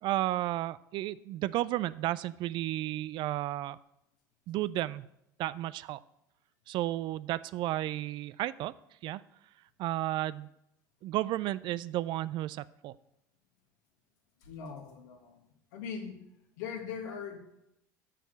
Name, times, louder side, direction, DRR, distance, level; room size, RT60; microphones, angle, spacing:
voice 1, 0.0-3.8 4.5-5.1 5.4-6.0 6.7-8.7 9.0-9.2 9.8-10.5 11.0-13.0, right 15 dB, 50° right, 17 dB, 0.3 m, -33 dB
voice 2, 14.4-15.4 15.7-16.2 16.6-17.4, left 6 dB, 70° left, 4 dB, 1.6 m, -40 dB
7.0 x 5.8 x 7.5 m, 0.81 s
hypercardioid pair, 70°, 10 cm